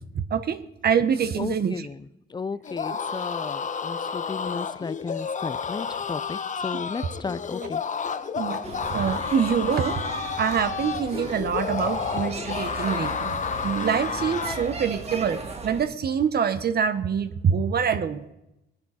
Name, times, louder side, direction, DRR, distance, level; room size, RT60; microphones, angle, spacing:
voice 1, 0.1-1.9 7.6-7.7 8.3-8.6 8.9-10.0 10.4-13.4 13.6-18.2, right 7 dB, 55° right, 9 dB, 1.1 m, -25 dB
voice 2, 1.4-7.8, left 4 dB, 20° left, 18 dB, 0.6 m, -34 dB
sound 1, 2.6-14.7, left 6 dB, 40° left, 0.9 m, -31 dB
sound 2, 8.6-15.8, right 3 dB, 30° right, 2.1 m, -36 dB
19.5 x 10.5 x 4.3 m, 0.88 s
cardioid pair, 90°, 20 cm